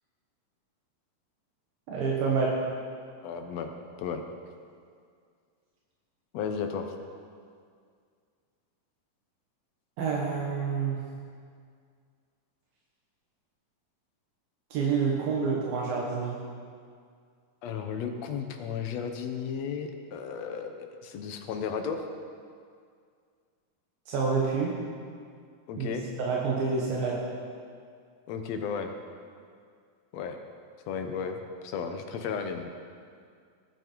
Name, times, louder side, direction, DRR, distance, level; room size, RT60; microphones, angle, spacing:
voice 1, 1.9-2.6 10.0-11.0 14.7-16.4 24.1-24.7 25.8-27.2, right 5 dB, 80° right, -3 dB, 3.2 m, -28 dB
voice 2, 3.2-3.7 4.0-4.2 6.3-6.9 17.6-22.0 25.7-26.1 28.3-28.9 30.1-30.4 30.9-32.7, left 6 dB, 75° left, 5 dB, 1.5 m, -34 dB
18.5 x 10.5 x 4.6 m, 2.2 s
omnidirectional pair, 4.1 m